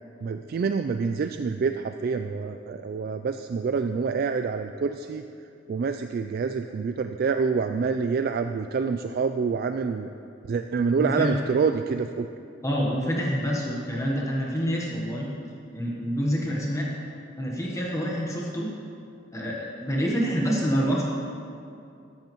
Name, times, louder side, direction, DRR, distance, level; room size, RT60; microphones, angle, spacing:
voice 1, 0.2-5.2 5.7-10.1 10.5-12.3, right 5 dB, 55° right, 8 dB, 0.3 m, -27 dB
voice 2, 11.0-11.3 12.6-15.3 15.7-16.9 17.4-18.7 19.3-21.0, equal, 15° left, -3 dB, 1.1 m, -27 dB
14.0 x 10.5 x 3.1 m, 2.5 s
head